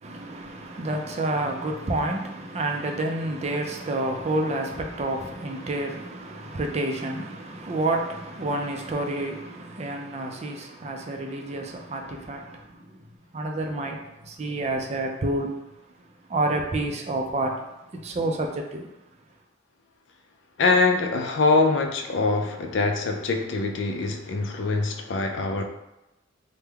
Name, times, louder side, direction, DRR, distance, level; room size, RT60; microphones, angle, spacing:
voice 1, 0.0-13.0 13.3-15.7 16.3-18.9, right 2 dB, 35° right, 0.4 m, -29 dB
voice 2, 20.6-25.6, left 3 dB, 65° left, 0.4 m, -23 dB
3.3 x 2.1 x 3.3 m
head